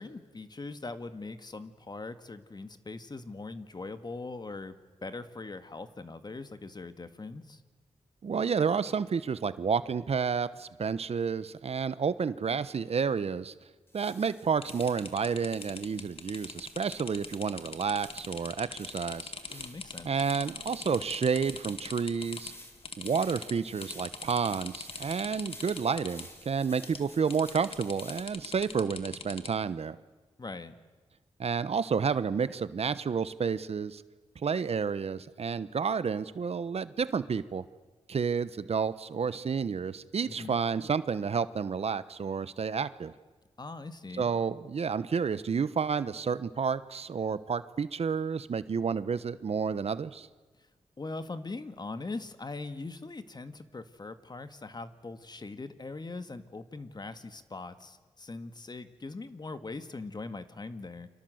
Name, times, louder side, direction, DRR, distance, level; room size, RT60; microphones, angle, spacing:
voice 1, 0.0-7.6 19.5-20.1 30.4-30.7 40.3-40.6 43.6-44.3 51.0-61.1, left 3 dB, 40° left, 10 dB, 1.9 m, -41 dB
voice 2, 8.2-13.5 13.9-19.7 20.0-22.5 23.0-30.0 31.4-34.0 34.4-37.6 38.1-43.1 44.2-50.3, right 6 dB, 60° right, 14 dB, 1.0 m, -30 dB
walking-on-leaves crunchy day-time, 13.9-28.8, left 1 dB, 20° left, 4.8 m, -53 dB
sound 1, 14.6-22.5 22.8-23.5 23.8-26.3 26.8-27.1 27.3-29.5, left 4 dB, 55° left, 2.1 m, -41 dB
29.5 x 25.0 x 8.0 m, 1.3 s
cardioid pair, 70°, 12 cm